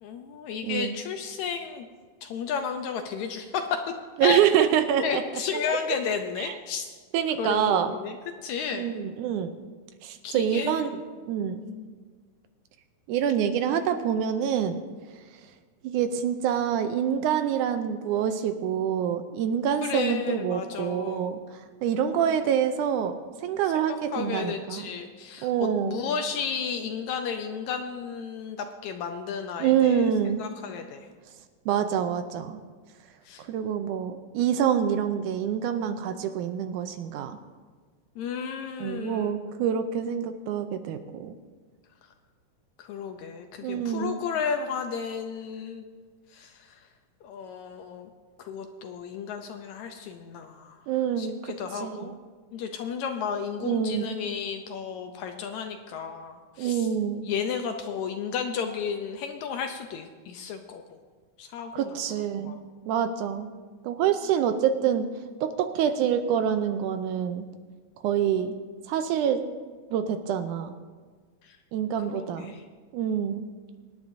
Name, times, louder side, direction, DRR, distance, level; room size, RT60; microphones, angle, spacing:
voice 1, 0.0-1.9 2.2-3.8 4.2-4.4 5.0-6.9 7.4-8.2 8.4-8.9 10.2-11.0 11.6-11.9 19.8-21.4 23.8-31.0 33.3-33.4 38.2-39.4 42.8-45.9 46.3-46.7 47.2-48.1 48.4-50.8 51.2-52.1 52.5-56.9 57.2-60.8 61.4-62.6 71.5-71.6 72.1-72.6, left 6 dB, 75° left, 5 dB, 1.8 m, -33 dB
voice 2, 0.6-1.0 4.2-5.4 5.7-5.8 6.4-6.6 7.1-8.0 8.7-9.5 10.0-10.9 11.3-11.6 13.1-14.8 15.8-21.4 21.8-24.9 25.4-26.1 29.6-30.4 31.7-32.6 33.5-37.4 38.8-41.3 43.6-44.2 50.9-52.2 53.6-54.2 56.6-57.3 61.7-62.6 62.9-63.5 63.8-65.1 65.4-67.5 68.0-68.6 68.9-69.4 69.9-70.8 71.7-72.5 72.9-73.5, right 9 dB, 80° right, 8 dB, 2.0 m, -26 dB
24.0 x 10.0 x 2.7 m, 1.5 s
omnidirectional pair, 3.8 m